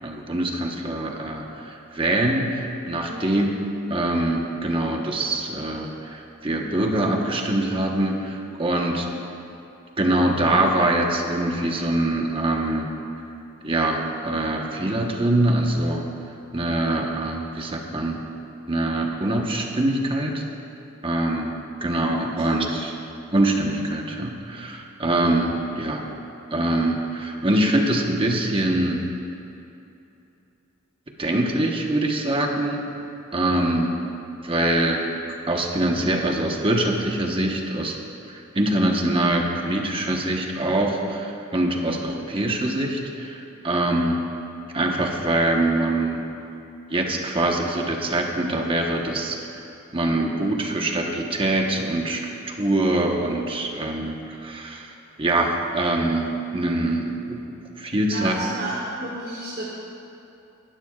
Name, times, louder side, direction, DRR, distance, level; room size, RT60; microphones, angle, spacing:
voice 1, 0.0-3.5 3.9-9.1 10.0-12.9 13.6-16.1 16.5-18.2 18.7-20.4 21.0-21.5 21.8-23.0 23.3-26.0 26.5-29.1 31.2-32.9 33.3-33.9 34.4-35.1 35.5-37.9 38.3-44.2 44.7-46.2 46.9-49.4 49.9-54.9 55.2-57.4 57.8-58.4, right 1 dB, 25° right, 1 dB, 1.1 m, -24 dB
voice 2, 22.3-22.7 57.2-57.3 57.6-57.7 58.1-59.7, right 1 dB, 50° right, -6 dB, 1.8 m, -33 dB
19.0 x 12.0 x 2.4 m, 2.8 s
head